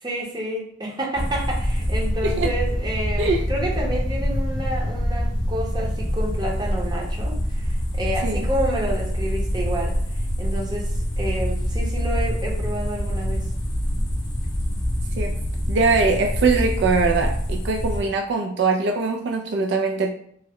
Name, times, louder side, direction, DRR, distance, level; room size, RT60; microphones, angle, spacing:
voice 1, 0.0-9.9 10.4-13.4, right 1 dB, 20° right, -2 dB, 0.7 m, -29 dB
sound 1, 1.2-18.0, equal, 20° left, 0.5 m, -25 dB
voice 2, 15.7-20.1, right 4 dB, 60° right, 3 dB, 0.3 m, -22 dB
3.3 x 2.1 x 3.5 m, 0.69 s
head